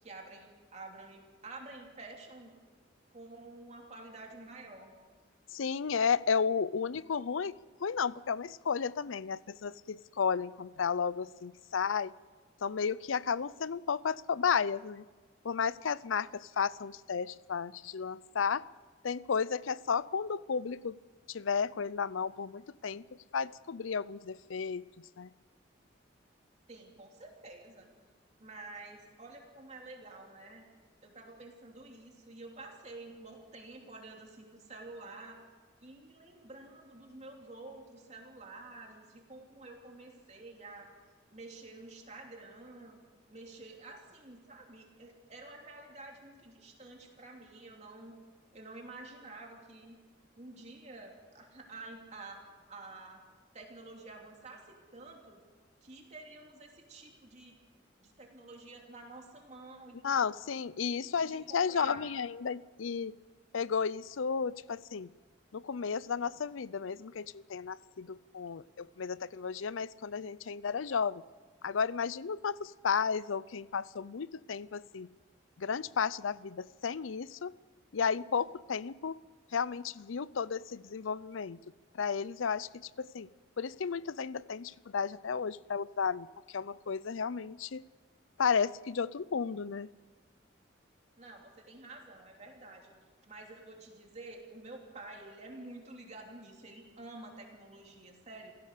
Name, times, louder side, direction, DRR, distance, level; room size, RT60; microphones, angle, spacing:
voice 1, 0.0-2.5 3.1-4.9 26.7-27.9 28.4-30.6 31.0-35.4 35.8-40.9 41.3-43.0 43.3-48.2 48.5-50.0 50.4-52.4 52.7-53.2 53.5-55.4 55.8-57.6 58.0-60.2 61.0-62.1 91.2-93.0 93.3-98.5, right 2 dB, 35° right, 1 dB, 3.0 m, -49 dB
voice 2, 5.5-12.1 12.6-15.0 15.4-18.6 19.0-21.0 21.3-23.0 23.3-24.8 25.2-25.3 60.0-63.1 63.5-65.1 65.5-71.2 71.6-75.1 75.6-77.5 77.9-79.2 79.5-81.6 81.9-83.3 83.6-87.8 88.4-89.9, left 6 dB, 90° left, 19 dB, 0.5 m, -33 dB
28.5 x 16.0 x 6.8 m, 1.5 s
head